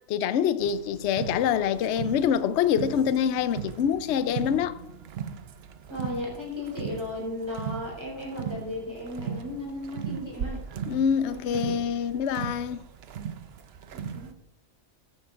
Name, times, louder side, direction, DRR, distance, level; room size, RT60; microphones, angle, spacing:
voice 1, 0.0-4.8 10.9-12.8, left 8 dB, 65° left, 0.8 m, -25 dB
sound 1, 0.6-14.3, right 7 dB, 60° right, 0.7 m, -38 dB
voice 2, 5.9-10.6 11.3-11.8 13.9-14.4, left 1 dB, 20° right, 4.2 m, -35 dB
14.5 x 9.3 x 2.5 m
omnidirectional pair, 1.5 m